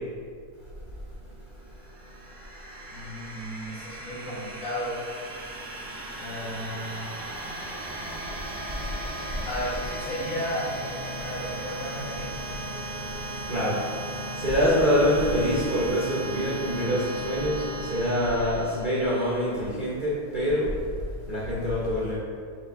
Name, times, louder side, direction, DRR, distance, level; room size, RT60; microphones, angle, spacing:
sound 1, 1.7-19.4, right 1 dB, 90° right, 1.3 m, -36 dB
voice 1, 2.9-5.0 6.2-7.1 9.4-10.7 11.2-12.3, equal, 60° left, -6 dB, 1.5 m, -34 dB
voice 2, 13.5-13.8 14.3-20.7 21.3-22.2, equal, 40° right, -8 dB, 0.8 m, -25 dB
4.9 x 3.1 x 3.4 m, 2.2 s
omnidirectional pair, 1.6 m